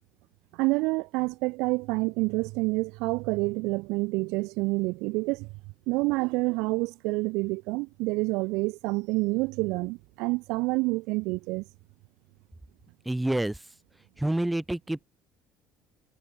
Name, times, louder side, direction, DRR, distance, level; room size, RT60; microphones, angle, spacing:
voice 1, 0.6-5.5 5.9-11.6, right 25 dB, 80° right, 1.2 m, -28 dB
voice 2, 13.0-13.6 14.2-15.1, right 1 dB, 5° right, 3.0 m, -28 dB
supercardioid pair, 100°, 0 cm